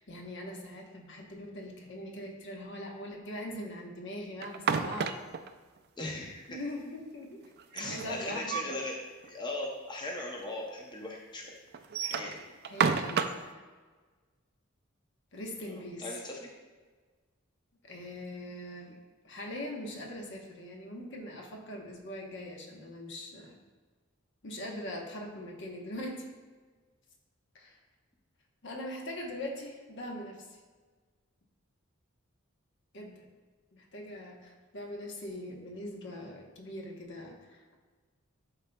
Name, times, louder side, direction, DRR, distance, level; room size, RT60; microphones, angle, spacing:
voice 1, 0.0-5.1 6.5-7.5 7.8-8.7 12.1-12.4 12.7-13.6 15.3-16.1 17.8-18.9 19.2-23.6 24.4-26.2 27.5-27.8 28.6-30.4 32.9-33.3 33.7-37.8, left 1 dB, 60° left, 1 dB, 1.0 m, -41 dB
sound 1, 4.4-5.5 7.6-8.8 9.2-9.3 9.6-9.7 10.5-10.6 11.7-13.5, right 6 dB, 50° right, 0.4 m, -31 dB
voice 2, 6.0-6.6 7.7-9.0 9.2-11.5 12.0-12.4 15.6-16.4, left 2 dB, 20° left, -1 dB, 0.6 m, -39 dB
11.5 x 4.0 x 2.2 m, 1.4 s
head